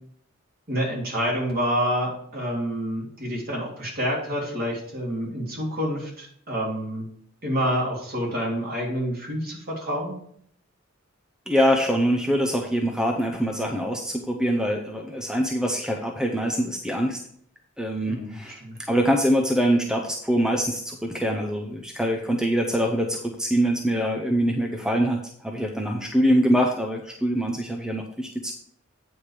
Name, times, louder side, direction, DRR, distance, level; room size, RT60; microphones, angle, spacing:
voice 1, 0.7-7.0 7.4-10.1 18.1-18.8, equal, 50° right, -3 dB, 3.3 m, -28 dB
voice 2, 11.5-17.2 17.8-18.6 18.9-28.5, equal, 5° right, 2 dB, 0.7 m, -24 dB
9.0 x 4.9 x 5.1 m, 0.64 s
head